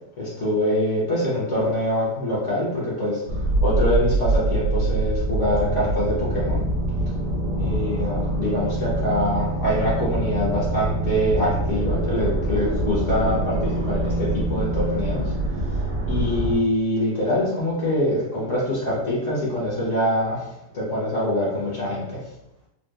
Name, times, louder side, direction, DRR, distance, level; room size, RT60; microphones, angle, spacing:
voice 1, 0.2-3.2 3.6-6.6 7.6-15.3 16.0-20.4 20.7-22.2, left 1 dB, 50° left, -8 dB, 1.3 m, -24 dB
sound 1, 3.3-16.6, right 2 dB, 55° right, 1.1 m, -24 dB
4.0 x 2.2 x 2.3 m, 0.87 s
omnidirectional pair, 1.9 m